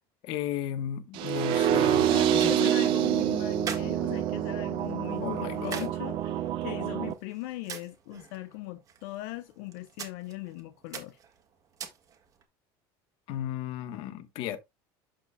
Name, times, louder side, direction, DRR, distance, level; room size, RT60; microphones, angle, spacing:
voice 1, 0.2-2.7 5.2-5.8 13.3-14.6, left 10 dB, 60° left, 1.2 m, -34 dB
sound 1, 1.1-7.1, right 11 dB, 60° right, 0.8 m, -27 dB
voice 2, 2.1-11.2, left 17 dB, 85° left, 0.8 m, -39 dB
sound 2, 2.4-12.4, right 7 dB, 35° right, 1.7 m, -46 dB
12.5 x 4.2 x 2.3 m
cardioid pair, 145°, 10 cm